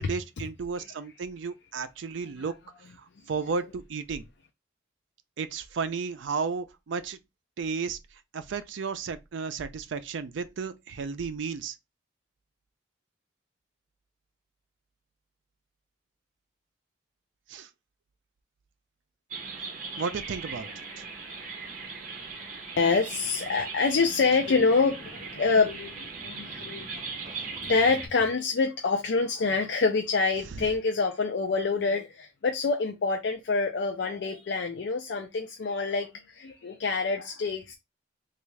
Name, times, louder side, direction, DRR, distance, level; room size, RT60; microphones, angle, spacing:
voice 1, 0.0-2.5 3.3-4.2 5.4-7.2 7.6-8.0 8.3-11.8 17.5-17.7 20.0-20.7 21.0-21.1 30.5-30.7, right 5 dB, 75° right, 0.4 m, -33 dB
sound 1, 19.3-28.1, right 4 dB, 40° right, 0.7 m, -39 dB
voice 2, 22.8-27.1 27.7-37.7, left 4 dB, 65° left, 0.4 m, -26 dB
3.5 x 2.4 x 3.1 m
head